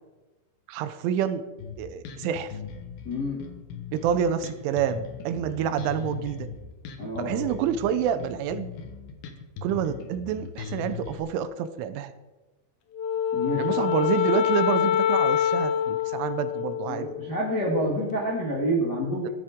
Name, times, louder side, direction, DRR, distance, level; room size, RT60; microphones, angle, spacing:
voice 1, 0.7-1.4 1.8-2.5 3.9-6.5 7.2-8.7 9.6-12.1 13.6-17.2 19.2-19.3, right 9 dB, 80° right, 11 dB, 3.2 m, -28 dB
Bass guitar, 1.6-11.2, left 6 dB, 70° left, 2.3 m, -39 dB
voice 2, 3.0-3.4 7.0-7.3 13.3-13.8 16.9-19.3, equal, 40° left, -4 dB, 1.4 m, -28 dB
Wind instrument woodwind instrument, 13.0-17.4, left 10 dB, 90° left, 3.7 m, -25 dB
15.5 x 13.0 x 3.7 m, 1.1 s
omnidirectional pair, 5.6 m